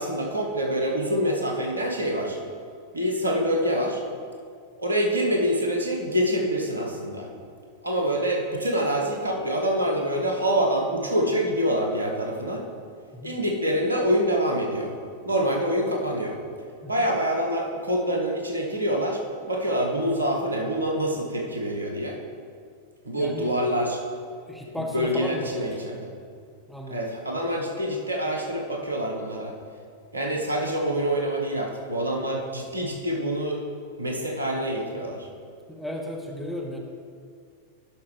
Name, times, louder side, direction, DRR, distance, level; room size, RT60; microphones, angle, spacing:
voice 1, 0.0-2.4 2.9-4.0 4.8-7.3 7.8-12.6 13.2-14.9 15.3-16.4 16.9-19.2 19.5-22.2 23.0-24.0 24.6-26.1 26.9-29.5 30.1-33.6 34.0-35.3, equal, 80° right, 1 dB, 1.0 m, -26 dB
voice 2, 23.2-23.5 24.5-25.8 26.7-27.1 35.7-36.8, left 1 dB, ahead, -1 dB, 1.1 m, -34 dB
11.5 x 5.8 x 3.3 m, 2.2 s
figure-of-eight pair, 90°, 0 cm